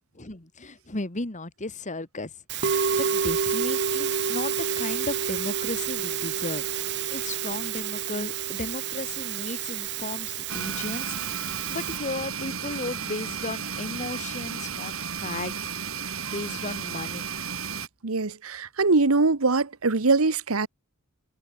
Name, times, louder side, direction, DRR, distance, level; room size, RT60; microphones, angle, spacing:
voice 1, 0.2-2.3 2.6-15.7 16.3-17.2, left 2 dB, 35° left, 2.1 m, -35 dB
Musical instrument, 2.5-12.0, right 7 dB, 55° right, 0.9 m, -29 dB
sound 1, 10.5-17.9, right 7 dB, 70° right, 4.0 m, -33 dB
voice 2, 18.0-20.7, right 3 dB, 85° right, 1.2 m, -22 dB
head